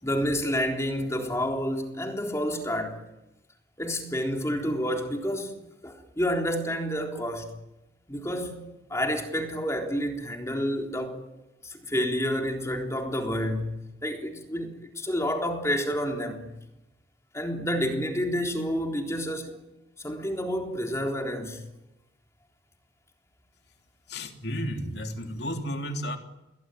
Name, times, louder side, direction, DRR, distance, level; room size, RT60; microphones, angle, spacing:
voice 1, 0.0-3.0 3.8-7.6 8.1-11.2 11.6-16.5 17.3-19.6 20.0-21.6, equal, 15° left, 3.7 m, -29 dB
voice 2, 24.1-26.2, equal, 60° left, 3.2 m, -32 dB
28.0 x 22.5 x 9.3 m
head